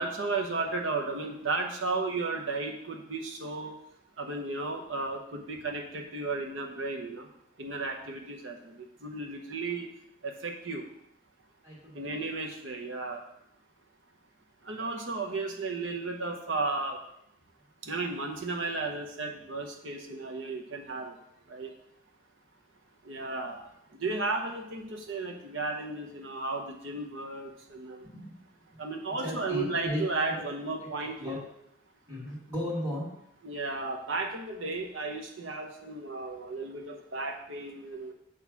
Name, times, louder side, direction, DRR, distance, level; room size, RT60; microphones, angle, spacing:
voice 1, 0.0-3.7 4.2-7.3 7.6-9.9 10.2-10.8 11.9-13.2 14.7-17.0 17.8-21.1 21.5-21.7 23.1-23.6 24.0-28.0 28.8-31.4 33.4-38.1, right 3 dB, 75° right, 2 dB, 1.0 m, -34 dB
voice 2, 11.6-12.3 28.0-28.3 28.7-28.8 29.2-30.5 30.8-30.9 31.2-31.4 32.1-33.1, left 1 dB, 20° right, -5 dB, 2.4 m, -36 dB
8.3 x 3.3 x 5.8 m, 0.77 s
head